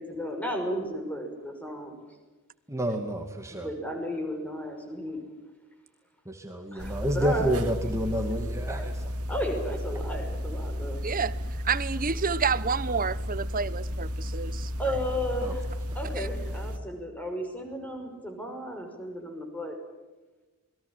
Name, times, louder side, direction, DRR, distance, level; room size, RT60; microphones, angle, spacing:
voice 1, 0.0-2.0 3.6-5.2 6.7-7.5 9.3-11.1 14.8-15.6 15.9-19.8, equal, 5° left, 5.8 m, -34 dB
voice 2, 2.7-3.7 6.2-9.1 15.4-15.6, equal, 15° right, 2.4 m, -30 dB
sound 1, 6.8-16.8, equal, 85° right, 2.3 m, -33 dB
voice 3, 11.0-11.4 11.6-14.9 16.1-16.3, right 5 dB, 40° right, 1.0 m, -29 dB
28.5 x 22.0 x 7.5 m
head